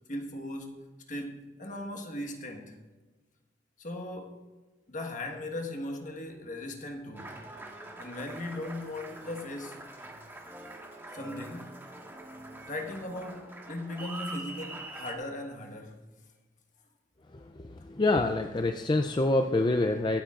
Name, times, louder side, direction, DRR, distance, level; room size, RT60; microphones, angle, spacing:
voice 1, 0.1-0.8 1.1-2.8 3.8-4.4 4.9-7.4 8.0-9.8 11.1-11.8 12.7-16.0, left 1 dB, 45° left, 1.5 m, -38 dB
Applause, 7.1-15.1, right 2 dB, 15° right, 1.6 m, -44 dB
voice 2, 17.3-20.2, left 2 dB, 25° left, 0.5 m, -27 dB
23.5 x 8.6 x 2.5 m
head